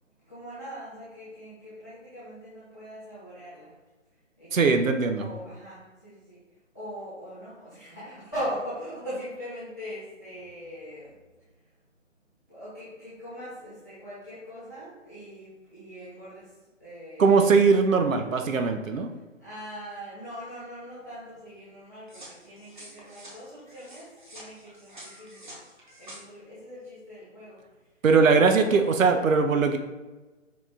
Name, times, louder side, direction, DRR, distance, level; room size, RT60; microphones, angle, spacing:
voice 1, 0.2-3.7 4.4-4.8 5.1-6.4 6.7-11.1 12.5-16.5 16.8-18.7 19.4-25.6 26.0-27.6, equal, 15° left, -13 dB, 0.8 m, -41 dB
voice 2, 4.5-5.3 17.2-19.1 28.0-29.8, right 4 dB, 90° right, 6 dB, 0.6 m, -20 dB
sound 1, 22.1-26.2, right 1 dB, 40° right, 0.8 m, -48 dB
4.8 x 2.3 x 3.7 m, 1.2 s
hypercardioid pair, 175°, 39 cm